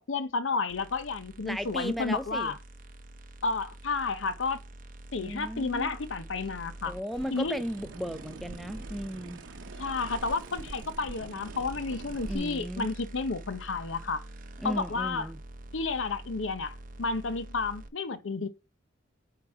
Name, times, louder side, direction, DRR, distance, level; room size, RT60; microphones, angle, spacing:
voice 1, 0.1-2.6 3.4-4.6 5.1-6.9 7.3-7.6 9.8-14.2 14.6-15.3 15.7-18.5, left 4 dB, 85° left, 0.7 m, -31 dB
sound 1, 0.7-17.9, right 1 dB, 45° right, 0.8 m, -46 dB
voice 2, 1.4-2.5 5.2-5.9 6.8-9.4 12.3-12.9 14.6-15.4, equal, ahead, 0.5 m, -35 dB
sound 2, 7.1-12.4, right 3 dB, 90° right, 0.7 m, -44 dB
8.7 x 4.0 x 4.7 m
head